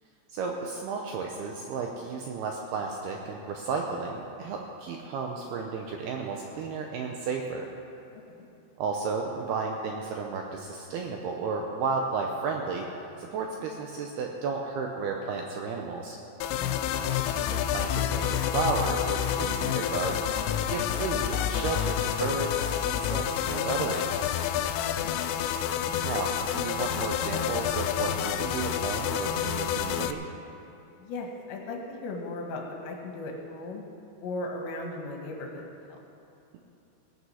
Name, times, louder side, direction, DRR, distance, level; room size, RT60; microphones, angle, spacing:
voice 1, 0.3-7.7 8.8-12.8 13.2-16.2 17.0-20.2 20.6-24.5 26.0-30.3, right 4 dB, 80° right, 1 dB, 2.3 m, -33 dB
sound 1, 16.4-30.1, left 10 dB, 90° left, 3.2 m, -29 dB
voice 2, 16.6-16.9 25.0-25.2 31.0-33.8 34.2-36.0, left 2 dB, 70° left, 0 dB, 3.5 m, -37 dB
19.0 x 9.3 x 5.7 m, 2.8 s
omnidirectional pair, 5.6 m